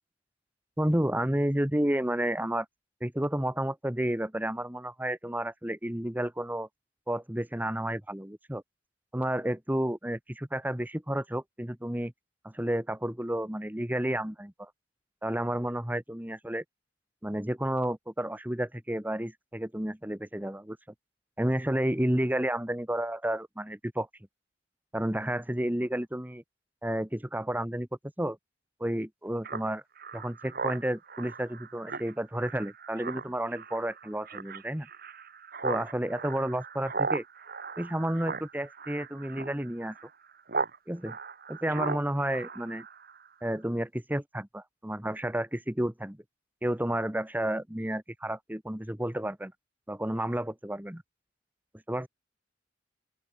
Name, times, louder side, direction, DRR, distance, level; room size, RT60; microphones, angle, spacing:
voice 1, 0.8-2.7 3.0-6.7 7.1-8.6 9.1-12.1 12.4-14.7 15.2-16.6 17.2-20.8 21.4-24.1 24.9-26.4 26.8-27.9 28.2-28.4 28.8-29.8 30.1-34.9 35.6-37.2 37.8-40.0 40.9-41.2 41.5-42.9 43.4-46.2 46.6-49.5 49.9-51.0 51.9-52.1, right 1 dB, 10° right, 1.4 m, -31 dB
Speech synthesizer, 29.4-40.8 41.0-43.3, right 4 dB, 55° right, 3.2 m, -37 dB
open air
head